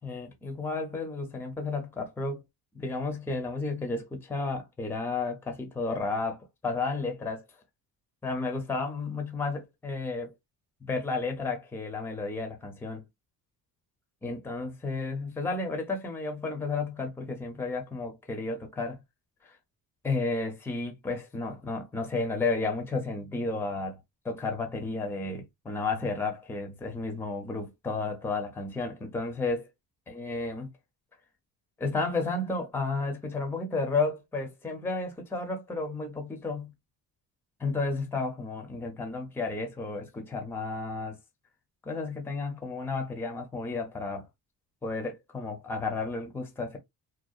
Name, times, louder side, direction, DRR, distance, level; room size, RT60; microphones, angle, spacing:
voice 1, 0.0-2.4 2.7-7.4 8.2-10.3 10.8-13.0 14.2-19.0 19.4-19.6 20.0-24.0 24.2-29.7 30.1-30.7 31.8-36.7 37.6-41.2 41.8-44.3 44.8-46.8, left 3 dB, 5° left, 0.4 m, -32 dB
2.7 x 2.1 x 2.3 m
cardioid pair, 125°, 39 cm